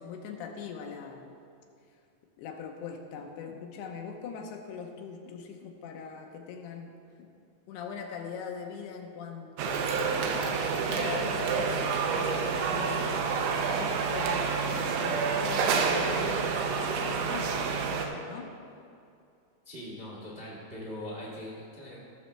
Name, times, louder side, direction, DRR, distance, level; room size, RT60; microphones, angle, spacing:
voice 1, 0.0-1.3 2.4-7.3 7.7-18.5, left 6 dB, 80° left, 3 dB, 2.7 m, -41 dB
sound 1, 9.6-18.1, right 5 dB, 80° right, 2.7 m, -28 dB
voice 2, 19.6-22.0, left 1 dB, 65° right, -7 dB, 0.5 m, -41 dB
17.5 x 6.9 x 3.3 m, 2.5 s
omnidirectional pair, 4.9 m